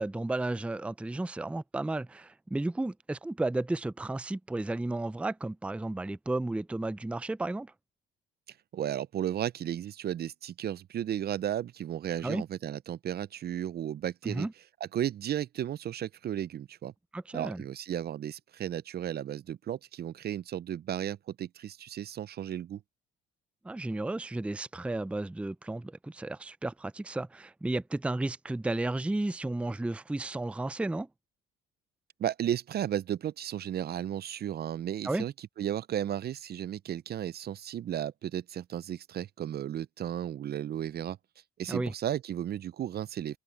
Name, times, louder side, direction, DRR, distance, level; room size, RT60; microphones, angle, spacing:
voice 1, 0.0-7.7 12.2-12.4 14.2-14.5 17.1-17.6 23.6-31.1 35.0-35.3 41.7-41.9, right 2 dB, 5° right, 0.5 m, -33 dB
voice 2, 8.7-14.5 14.8-16.9 17.3-22.8 32.2-41.2 41.6-43.4, right 10 dB, 50° right, 0.6 m, -34 dB
supercardioid pair, 70°, 21 cm